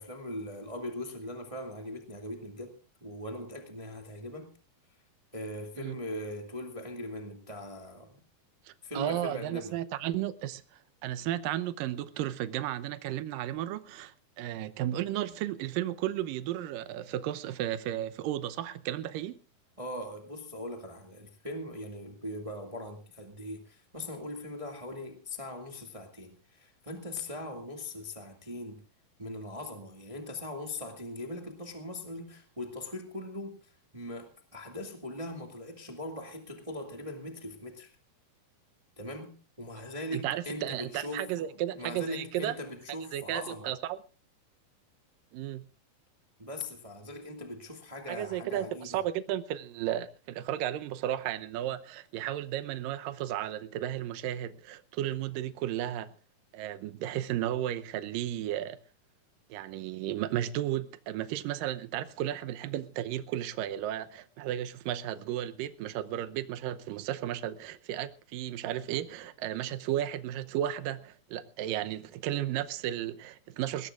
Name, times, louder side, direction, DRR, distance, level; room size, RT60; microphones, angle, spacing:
voice 1, 0.0-4.5 5.3-8.2 8.8-9.8 19.8-28.8 29.2-37.9 39.0-43.7 46.4-49.0, left 1 dB, 15° right, 1.4 m, -40 dB
voice 2, 8.7-19.4 40.1-42.5 43.1-44.0 45.3-45.7 48.1-56.1 56.5-58.8 59.5-73.9, right 12 dB, 75° right, 2.5 m, -34 dB
21.5 x 18.5 x 2.5 m
omnidirectional pair, 4.2 m